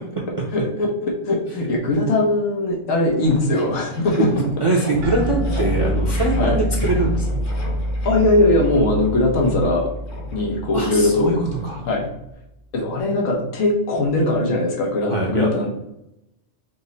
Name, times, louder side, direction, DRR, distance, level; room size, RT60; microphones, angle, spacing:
voice 1, 0.5-4.3 6.4-6.6 8.0-9.9 10.3-11.3 11.8-12.1 12.7-15.7, left 2 dB, 85° left, -1 dB, 1.2 m, -20 dB
sound 1, 2.5-2.6 2.9-12.3, left 2 dB, 60° left, 1.4 m, -34 dB
voice 2, 4.3-7.4 10.7-11.8 15.1-15.6, right 2 dB, 35° right, -2 dB, 0.6 m, -23 dB
sound 2, 5.0-11.9, equal, 75° right, 1.2 m, -26 dB
5.2 x 2.0 x 3.9 m, 0.86 s
omnidirectional pair, 1.3 m